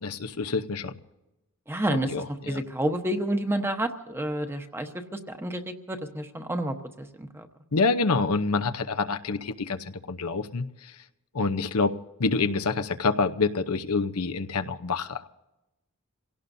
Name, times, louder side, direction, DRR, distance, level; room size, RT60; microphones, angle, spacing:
voice 1, 0.0-0.9 1.9-2.6 7.7-11.0 11.3-11.9 12.2-15.3, left 4 dB, 90° left, 8 dB, 0.8 m, -27 dB
voice 2, 1.7-7.5, right 1 dB, 10° right, 6 dB, 1.0 m, -30 dB
28.0 x 17.5 x 2.7 m, 0.97 s
head